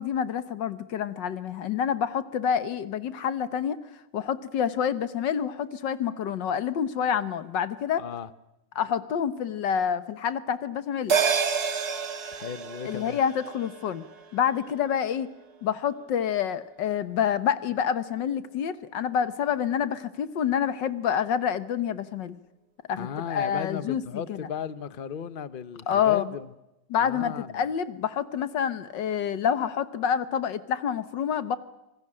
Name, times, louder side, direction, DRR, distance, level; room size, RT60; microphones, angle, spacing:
voice 1, 0.0-3.8 4.1-8.0 8.7-11.2 12.8-14.0 14.3-15.3 15.6-22.4 22.9-24.0 24.3-24.4 25.9-26.3 26.9-31.6, left 8 dB, 80° left, 1.7 m, -27 dB
voice 2, 8.0-8.3 12.3-13.2 23.0-26.5 27.0-27.6, left 8 dB, 35° left, 0.9 m, -35 dB
sound 1, 11.1-15.8 16.1-16.2, right 6 dB, 60° right, 2.3 m, -30 dB
26.5 x 19.5 x 8.8 m
omnidirectional pair, 1.9 m